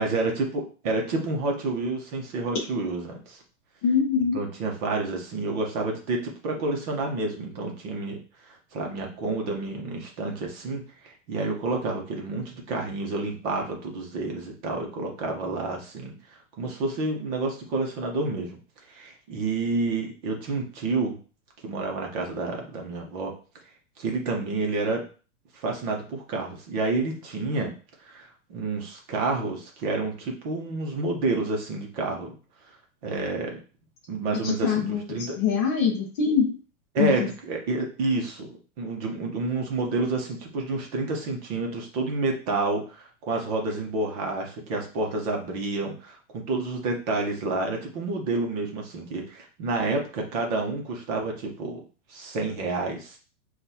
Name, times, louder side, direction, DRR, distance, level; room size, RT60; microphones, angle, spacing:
voice 1, 0.0-3.4 4.3-8.2 8.5-16.1 16.6-18.6 18.9-21.2 21.6-23.3 24.0-25.0 25.5-27.7 28.0-32.4 33.0-33.6 34.1-35.4 36.9-51.8 52.1-53.2, right 3 dB, 30° right, 1 dB, 0.9 m, -29 dB
voice 2, 3.8-4.4 34.4-36.5 37.0-37.1, left 6 dB, 20° left, -4 dB, 0.5 m, -24 dB
5.9 x 2.4 x 2.7 m, 0.37 s
hypercardioid pair, 160°, 41 cm